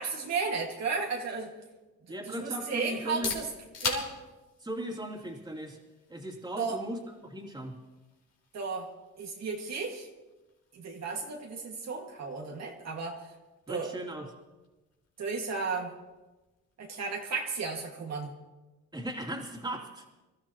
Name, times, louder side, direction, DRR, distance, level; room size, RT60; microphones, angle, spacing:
voice 1, 0.0-1.5 2.3-3.5 3.8-4.1 6.6-6.8 8.5-8.9 9.2-10.1 10.7-13.3 13.7-13.9 15.2-15.9 16.8-18.3, right 4 dB, 60° right, 0 dB, 2.1 m, -34 dB
voice 2, 2.1-3.3 4.6-5.8 6.1-7.8 13.7-14.3 18.9-20.0, right 1 dB, 15° right, -1 dB, 3.0 m, -37 dB
sound 1, 2.9-18.6, left 4 dB, 55° left, 3.8 m, -45 dB
26.0 x 13.5 x 3.1 m, 1.1 s
cardioid pair, 90°, 30 cm